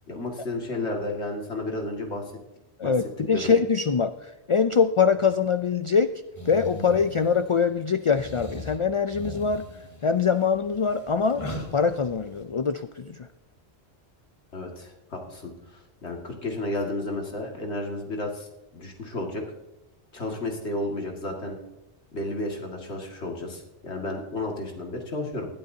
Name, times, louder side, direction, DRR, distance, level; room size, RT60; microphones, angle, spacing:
voice 1, 0.1-2.2 2.8-2.9 3.3-3.5 14.5-18.5 18.7-19.5 20.1-21.6 22.1-25.5, left 2 dB, 90° left, 1 dB, 2.4 m, -32 dB
voice 2, 2.8-6.1 6.5-9.6 10.0-11.4 11.7-13.3, left 5 dB, 55° left, 10 dB, 0.3 m, -23 dB
sound 1, 6.3-7.6 8.1-12.4, left 1 dB, 30° left, 1.9 m, -39 dB
20.0 x 12.0 x 2.8 m, 0.99 s
omnidirectional pair, 1.1 m